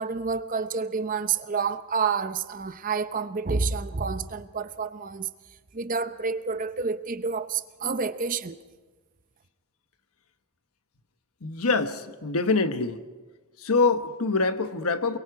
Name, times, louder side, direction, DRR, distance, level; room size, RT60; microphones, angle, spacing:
voice 1, 0.0-5.3 5.7-8.6, right 5 dB, 40° right, 0.7 m, -29 dB
voice 2, 11.4-13.0 13.6-15.2, left 3 dB, 80° left, 1.2 m, -25 dB
28.0 x 22.0 x 4.8 m
head